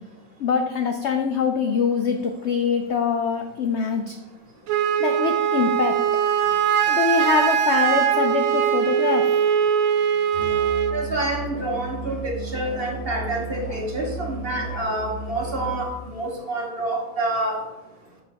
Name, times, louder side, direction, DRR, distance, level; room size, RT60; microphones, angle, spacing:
voice 1, 0.4-4.1 5.0-5.9 6.9-9.3, left 6 dB, 75° left, 4 dB, 0.6 m, -23 dB
Wind instrument woodwind instrument, 4.7-11.0, right 9 dB, 65° right, 0.9 m, -21 dB
Musical instrument, 10.3-15.9, right 4 dB, 45° left, 1.5 m, -34 dB
voice 2, 10.9-17.6, right 1 dB, 40° right, -1 dB, 1.4 m, -27 dB
6.8 x 3.2 x 5.8 m, 1.0 s
omnidirectional pair, 1.8 m